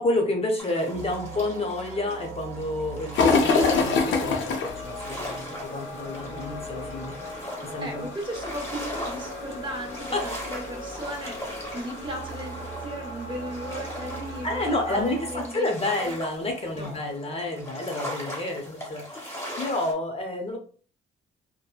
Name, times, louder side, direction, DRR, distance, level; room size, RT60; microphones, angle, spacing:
voice 1, 0.0-5.0 5.2-8.1 10.1-10.2 14.4-20.6, left 2 dB, 30° left, 2 dB, 0.6 m, -30 dB
sound 1, 0.6-19.9, equal, 15° left, 1.2 m, -40 dB
sound 2, 0.9-15.5, right 2 dB, 90° right, 0.7 m, -40 dB
sound 3, 3.1-15.0, left 4 dB, 70° left, 0.6 m, -30 dB
voice 2, 7.8-15.6 16.0-16.1 16.7-17.0, equal, 25° right, 1 dB, 0.9 m, -36 dB
2.9 x 2.1 x 2.3 m, 0.41 s
cardioid pair, 90°, 20 cm